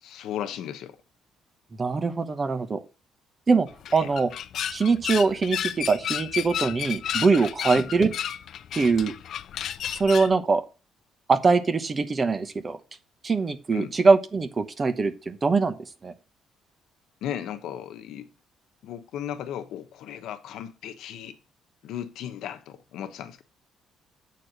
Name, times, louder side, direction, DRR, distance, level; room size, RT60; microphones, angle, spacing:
voice 1, 0.0-1.0 3.9-4.1 7.7-7.9 13.7-13.9 17.2-18.3 18.8-21.4 21.8-23.4, left 10 dB, 75° left, 1.0 m, -36 dB
voice 2, 1.8-2.8 3.5-4.3 4.7-8.1 8.7-9.1 10.0-10.6 11.3-12.8 13.2-15.8 16.0-16.1, right 4 dB, 25° right, 1.0 m, -22 dB
sound 1, 3.7-10.3, left 9 dB, 55° left, 0.4 m, -32 dB
8.3 x 4.6 x 6.6 m
cardioid pair, 150°, 0 cm